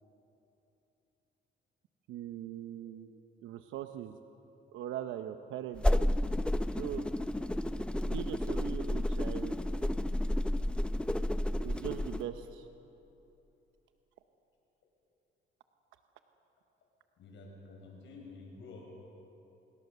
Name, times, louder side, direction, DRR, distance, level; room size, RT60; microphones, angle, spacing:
voice 1, 2.1-4.2 4.7-5.8 6.8-7.0 8.1-9.5 11.6-12.7, right 11 dB, 90° right, 8 dB, 0.8 m, -41 dB
sound 1, 5.8-12.2, left 1 dB, 5° left, 0.7 m, -31 dB
voice 2, 6.6-7.1 8.8-8.9 17.2-18.9, left 3 dB, 75° left, 0 dB, 6.4 m, -51 dB
26.0 x 21.5 x 6.9 m, 3.0 s
cardioid pair, 90°, 20 cm